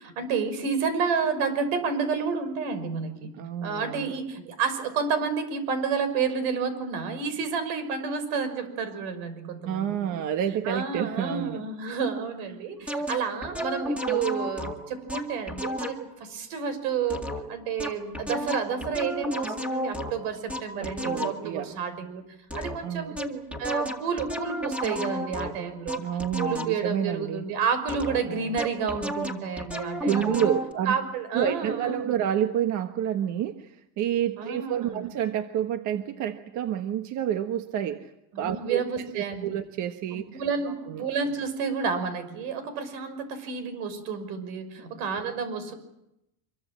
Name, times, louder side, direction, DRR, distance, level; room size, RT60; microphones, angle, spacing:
voice 1, 0.0-3.3 3.6-10.2 10.6-17.2 17.5-22.2 22.5-26.0 26.4-30.5 30.9-32.1 34.4-35.1 38.3-39.6 40.1-45.7, right 5 dB, 80° right, 10 dB, 6.1 m, -30 dB
voice 2, 3.4-4.1 9.6-11.7 20.8-21.7 22.8-23.2 26.0-27.4 28.3-28.6 30.1-31.0 31.3-38.1 38.4-38.8 39.1-40.2 40.6-41.1, right 10 dB, 50° right, 7 dB, 1.3 m, -29 dB
sound 1, 12.9-16.1 17.1-21.6 22.5-22.9 23.2-27.0 27.9-30.7, equal, 5° right, 2.2 m, -33 dB
25.5 x 23.5 x 7.6 m, 0.86 s
cardioid pair, 160°, 38 cm